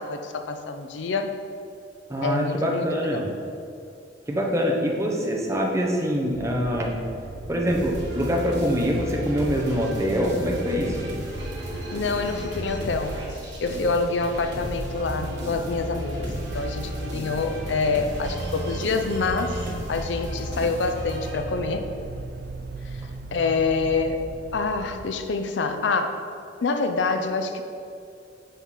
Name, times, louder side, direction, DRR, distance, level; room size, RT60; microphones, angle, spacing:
voice 1, 0.0-1.4 2.2-3.2 11.9-13.2 13.6-21.9 22.8-23.0 23.3-24.2 24.5-26.2 26.6-27.6, left 4 dB, 75° left, 7 dB, 0.5 m, -26 dB
voice 2, 2.1-3.3 4.3-7.0 7.5-11.1, equal, 15° right, -1 dB, 0.8 m, -24 dB
sound 1, 6.3-25.1, right 3 dB, 55° right, 0.4 m, -38 dB
sound 2, 7.7-21.9, equal, 75° right, 1.7 m, -34 dB
9.2 x 3.9 x 4.2 m, 2.6 s
head